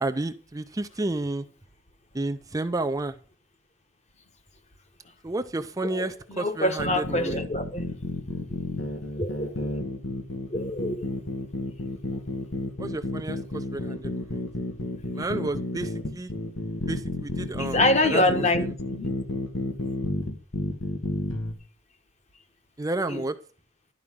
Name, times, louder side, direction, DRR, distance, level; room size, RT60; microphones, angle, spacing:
voice 1, 0.0-1.4 2.1-3.1 5.2-7.4 12.8-14.4 15.1-16.3 16.9-18.4 22.8-23.4, right 2 dB, 15° right, 0.5 m, -31 dB
voice 2, 5.8-7.9 9.2-9.8 10.5-11.1 17.6-18.6 18.9-19.1 23.1-23.2, left 1 dB, 35° left, 1.2 m, -26 dB
sound 1, 6.8-21.5, left 1 dB, 85° left, 1.5 m, -31 dB
12.0 x 4.8 x 7.5 m
head